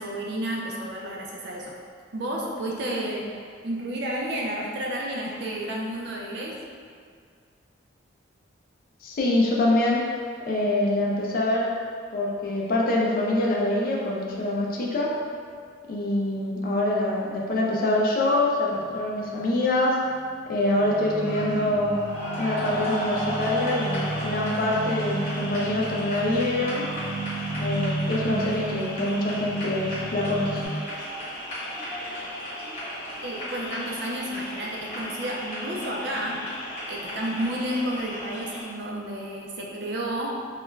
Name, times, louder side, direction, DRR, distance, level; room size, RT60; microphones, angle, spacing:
voice 1, 0.0-1.8 2.1-6.6 33.2-36.5 36.9-40.3, right 1 dB, 60° right, -2 dB, 0.4 m, -31 dB
voice 2, 9.0-10.0 10.5-11.7 12.1-15.1 15.9-20.0 20.5-21.9 22.4-26.9 27.6-30.7, left 1 dB, 45° left, -3 dB, 0.4 m, -25 dB
sound 1, 18.8-19.0 19.4-30.7, right 2 dB, 5° left, 1.0 m, -34 dB
sound 2, 20.7-38.6, equal, 30° left, 0.8 m, -35 dB
2.3 x 2.1 x 3.1 m, 2.1 s
head